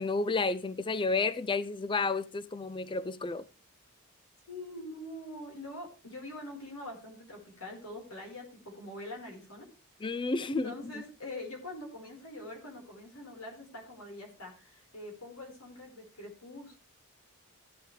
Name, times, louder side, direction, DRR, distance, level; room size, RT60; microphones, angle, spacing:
voice 1, 0.0-3.5 10.0-10.7, left 3 dB, 20° left, 0.4 m, -31 dB
voice 2, 4.5-9.7 10.6-16.8, left 1 dB, 90° left, 4.7 m, -44 dB
15.0 x 8.6 x 3.3 m
head